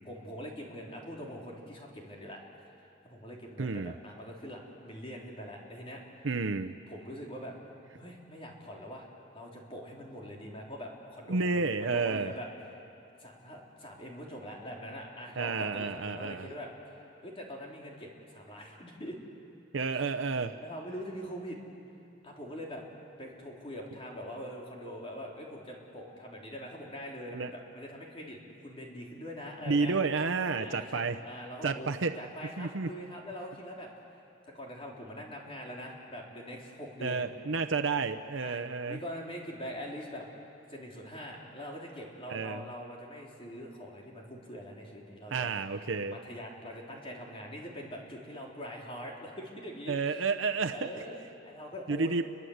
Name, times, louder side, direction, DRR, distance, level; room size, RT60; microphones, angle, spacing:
voice 1, 0.1-2.4 2.8-6.0 6.9-7.5 8.0-12.5 13.2-16.7 17.2-19.2 19.9-20.0 20.6-21.6 22.2-22.8 23.2-29.9 30.5-31.9 32.2-33.9 34.5-37.3 38.4-40.3 40.7-45.5 46.1-50.0 50.7-52.2, equal, 30° left, -2 dB, 3.7 m, -43 dB
voice 2, 3.6-3.9 6.2-6.8 11.3-12.3 15.4-16.5 19.7-20.6 27.3-27.5 29.7-31.2 31.6-32.1 32.6-32.9 37.0-39.0 42.3-42.7 45.3-46.2 49.9-50.9 51.9-52.3, right 4 dB, 80° right, 7 dB, 0.8 m, -31 dB
29.5 x 23.0 x 8.0 m, 2.6 s
head